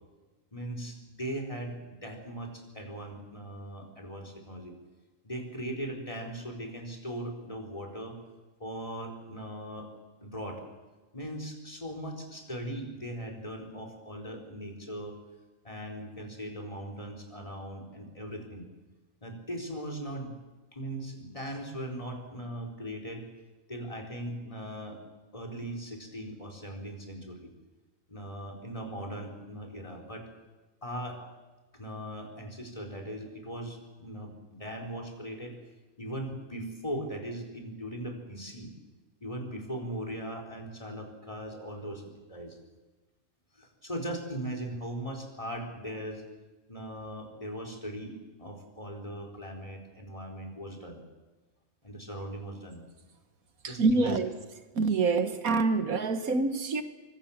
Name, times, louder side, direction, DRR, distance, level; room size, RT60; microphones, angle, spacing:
voice 1, 0.5-4.7 5.2-8.2 8.6-9.9 10.2-10.6 11.1-15.2 15.6-18.7 19.2-20.3 20.7-23.3 23.7-25.0 25.3-27.5 28.1-30.3 30.8-31.2 31.7-35.6 36.0-38.7 39.2-42.6 43.5-46.2 46.7-48.1 48.4-51.0 51.8-52.8 53.6-54.2, right 1 dB, 25° left, 4.4 m, -39 dB
voice 2, 53.6-54.3 54.8-56.8, right 3 dB, 85° right, 1.9 m, -26 dB
25.0 x 23.5 x 7.4 m
omnidirectional pair, 1.4 m